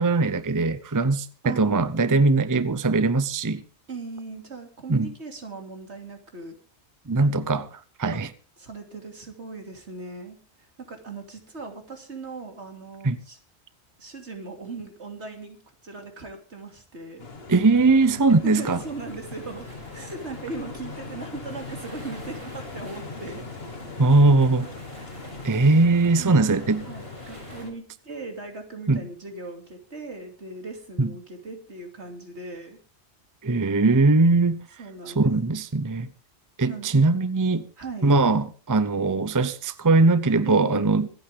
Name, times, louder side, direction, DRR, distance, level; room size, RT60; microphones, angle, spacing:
voice 1, 0.0-3.6 4.9-5.1 7.1-8.3 13.0-13.2 17.5-18.8 24.0-24.7 25.4-26.8 28.9-29.0 31.0-31.1 33.4-34.6 35.2-36.1 36.6-37.7 38.0-41.1, right 3 dB, 20° right, 0.6 m, -20 dB
voice 2, 1.4-1.8 3.9-6.6 8.1-8.2 8.6-13.4 14.0-17.3 18.2-23.5 26.2-26.6 26.8-32.8 34.8-35.3 36.7-37.0 37.8-38.1 40.5-41.1, right 3 dB, 75° right, 3.0 m, -39 dB
sound 1, 17.2-27.7, left 3 dB, 60° left, 2.0 m, -40 dB
sound 2, 18.5-27.7, right 1 dB, 50° right, 7.0 m, -48 dB
25.5 x 8.7 x 3.6 m
omnidirectional pair, 1.2 m